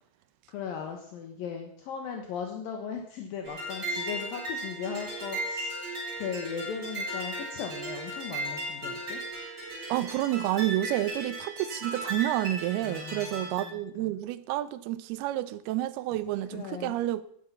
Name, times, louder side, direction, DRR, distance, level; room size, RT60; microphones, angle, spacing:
voice 1, 0.5-5.8 6.2-9.2 12.8-14.1 16.5-17.0, left 7 dB, 70° left, 3.0 m, -38 dB
sound 1, 3.4-13.7, right 1 dB, 20° right, 7.9 m, -36 dB
voice 2, 9.9-17.2, right 14 dB, 85° right, 2.7 m, -29 dB
15.5 x 11.5 x 5.6 m
omnidirectional pair, 4.4 m